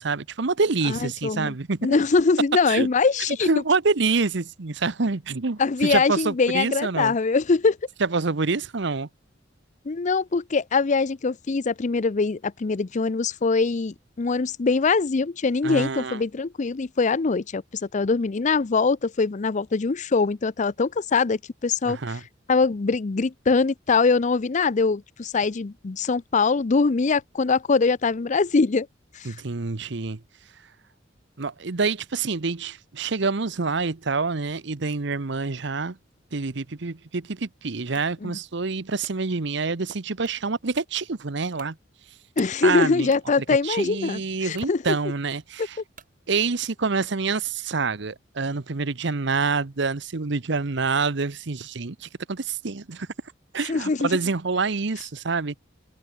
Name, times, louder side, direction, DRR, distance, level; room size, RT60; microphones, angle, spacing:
voice 1, 0.0-1.9 2.7-2.9 3.4-7.2 8.0-9.1 15.6-16.2 21.8-22.2 29.2-30.2 31.4-36.0 36.3-41.8 42.6-43.1 43.6-45.8 46.3-53.1 53.5-55.5, right 4 dB, 65° right, 0.9 m, -27 dB
voice 2, 0.9-1.5 1.8-3.6 5.6-7.8 9.9-17.6 17.9-22.0 22.5-28.9 29.2-29.3 38.2-38.3 42.4-44.8 53.7-54.1, left 4 dB, 40° left, 0.5 m, -23 dB
sound 1, 37.9-38.1 38.7-39.2 40.2-40.4 41.0-41.1 41.5-41.8 43.1-43.3 44.1-44.2 44.5-44.8 45.9-46.2, right 7 dB, 45° right, 3.2 m, -51 dB
head